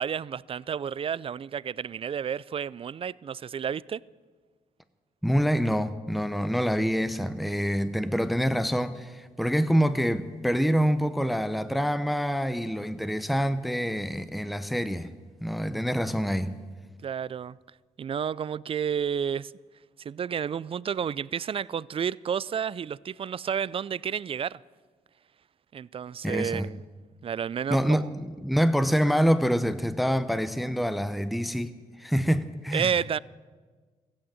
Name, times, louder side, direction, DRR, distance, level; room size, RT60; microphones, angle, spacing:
voice 1, 0.0-4.0 17.0-17.6 18.0-19.5 20.0-24.6 25.7-26.8 27.2-28.1 32.7-33.2, right 8 dB, 40° right, 0.4 m, -31 dB
voice 2, 5.2-15.1 15.4-16.6 26.2-26.7 27.7-32.9, equal, ahead, 0.8 m, -26 dB
14.5 x 8.8 x 8.7 m
supercardioid pair, 55°, 14 cm